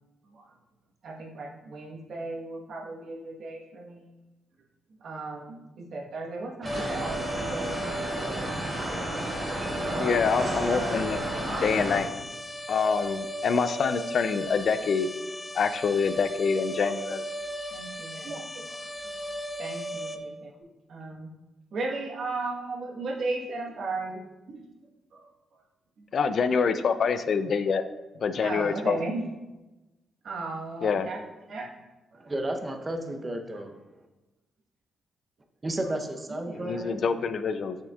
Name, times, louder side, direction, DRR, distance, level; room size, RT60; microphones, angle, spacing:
voice 1, 1.0-4.1 5.0-5.6 5.9-8.6 8.9-9.1 9.8-10.3 11.9-12.0 17.7-18.8 19.6-20.5 20.9-21.3 21.7-24.2 24.5-24.6 25.1-25.3 28.4-29.2 30.2-31.2 31.5-31.7 36.3-36.8, right 3 dB, 65° right, 0 dB, 1.2 m, -36 dB
sound 1, 6.6-12.0, right 1 dB, 45° right, 1.8 m, -32 dB
sound 2, 6.7-20.2, equal, 20° left, 0.6 m, -36 dB
voice 2, 10.0-12.1 12.7-15.1 15.5-17.2 26.1-27.8 28.2-29.0 30.8-31.1 36.5-37.8, left 5 dB, 60° left, 11 dB, 0.4 m, -26 dB
voice 3, 32.2-33.7 35.6-37.0, right 1 dB, 25° right, 5 dB, 0.7 m, -32 dB
6.5 x 6.1 x 2.4 m, 1.1 s
cardioid pair, 65°, 0 cm